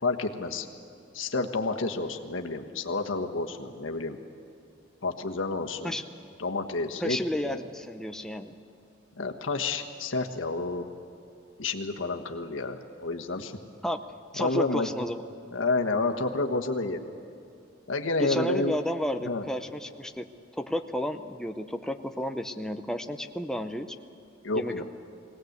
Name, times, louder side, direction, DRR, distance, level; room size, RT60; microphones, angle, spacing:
voice 1, 0.0-0.7 1.1-4.2 5.0-5.9 6.4-7.6 9.2-10.9 11.6-13.6 14.4-14.9 15.5-17.1 17.9-18.8 19.2-19.4 24.4-24.8, left 3 dB, 90° left, 4 dB, 1.4 m, -30 dB
voice 2, 7.0-8.5 13.8-14.0 14.3-15.2 18.2-20.3 20.5-23.9 24.5-24.8, equal, 5° left, 6 dB, 0.7 m, -32 dB
21.5 x 18.5 x 8.0 m, 2.6 s
head